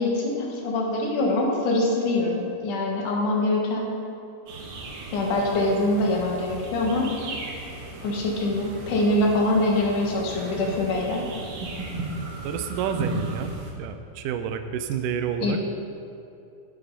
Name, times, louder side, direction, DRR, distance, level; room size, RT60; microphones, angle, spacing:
voice 1, 0.0-3.9 5.1-7.1 8.0-11.3 15.4-15.6, left 2 dB, 80° left, -1 dB, 3.0 m, -24 dB
sound 1, 4.5-13.7, right 2 dB, 70° right, 2.7 m, -36 dB
voice 2, 12.4-15.6, right 8 dB, 90° right, 8 dB, 2.2 m, -29 dB
10.0 x 8.1 x 5.4 m, 2.7 s
omnidirectional pair, 3.7 m